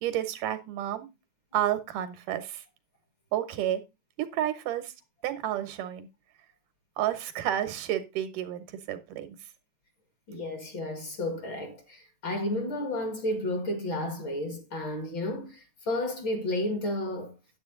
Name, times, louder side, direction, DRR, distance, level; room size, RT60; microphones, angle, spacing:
voice 1, 0.0-1.1 1.5-2.6 3.3-3.8 4.2-4.9 5.2-6.1 7.0-9.3, right 11 dB, 90° right, 2.8 m, -30 dB
voice 2, 10.3-17.3, left 1 dB, 45° left, 2.2 m, -32 dB
9.6 x 8.2 x 3.7 m
omnidirectional pair, 3.6 m